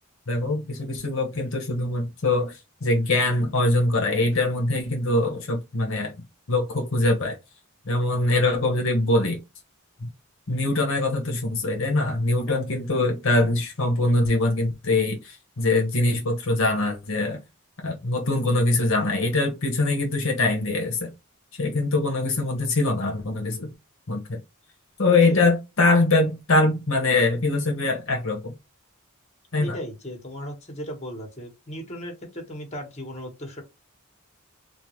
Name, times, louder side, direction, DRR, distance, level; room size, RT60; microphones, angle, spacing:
voice 1, 0.3-6.1 6.5-7.3 7.9-9.4 10.0-10.1 10.5-17.4 17.8-21.1 21.6-23.7 24.1-24.4 25.0-28.5 29.5-29.8, left 2 dB, 65° left, 0.9 m, -23 dB
voice 2, 12.5-12.8 25.1-25.4 29.6-33.6, equal, 30° left, 1.2 m, -36 dB
3.6 x 2.4 x 3.0 m
head